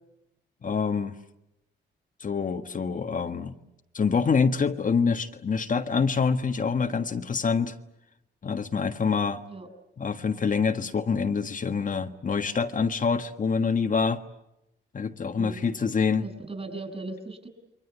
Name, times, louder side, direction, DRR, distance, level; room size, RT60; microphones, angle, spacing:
voice 1, 0.6-1.2 2.2-3.5 3.9-7.7 8.4-9.4 10.0-14.2 14.9-16.2, left 5 dB, 45° left, 6 dB, 1.6 m, -26 dB
voice 2, 15.2-15.6 16.2-17.5, right 2 dB, 30° right, 7 dB, 6.7 m, -38 dB
28.5 x 23.0 x 8.2 m, 0.87 s
cardioid pair, 90°, 19 cm